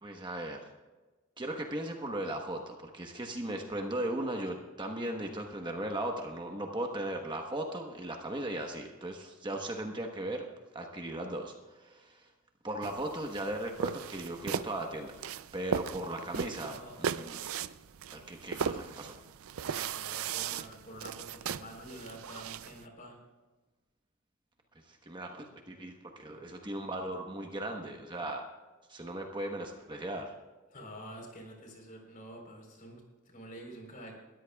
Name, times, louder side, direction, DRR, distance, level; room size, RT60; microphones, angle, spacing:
voice 1, 0.0-0.6 1.4-10.4 10.7-12.3 12.6-15.1 15.5-17.5 18.1-19.2 24.9-28.4 28.9-30.3, right 1 dB, 20° right, 2 dB, 1.1 m, -37 dB
sound 1, 12.8-22.8, right 7 dB, 80° right, 0.5 m, -38 dB
voice 2, 19.7-23.2 30.7-34.1, equal, 40° left, 2 dB, 4.0 m, -48 dB
21.0 x 13.5 x 2.3 m, 1.2 s
head